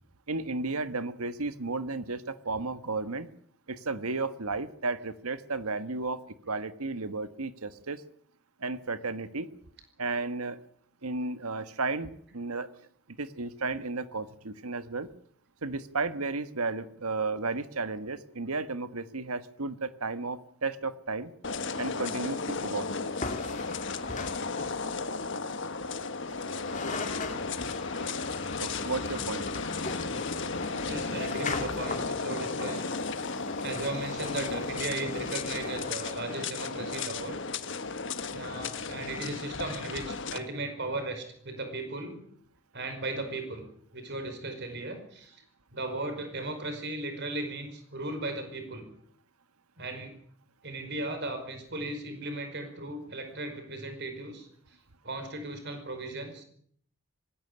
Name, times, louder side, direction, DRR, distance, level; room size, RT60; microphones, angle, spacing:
voice 1, 0.3-3.3 3.7-8.0 8.6-9.5 10.0-10.6 11.0-12.7 13.2-15.1 15.6-21.3 21.8-22.9 28.6-29.5, right 3 dB, 85° right, 12 dB, 1.4 m, -33 dB
sound 1, 21.4-40.4, left 4 dB, 55° left, 1.4 m, -34 dB
sound 2, 23.2-25.0 26.3-26.4 26.6-36.1, left 3 dB, 35° left, 2.6 m, -40 dB
voice 2, 30.9-32.9 33.6-37.4 38.3-42.2 42.7-43.7 43.9-45.4 45.7-48.8 49.8-50.1 50.6-54.5 55.0-56.4, right 2 dB, 50° right, 7 dB, 5.1 m, -36 dB
20.5 x 16.5 x 9.9 m, 0.65 s
head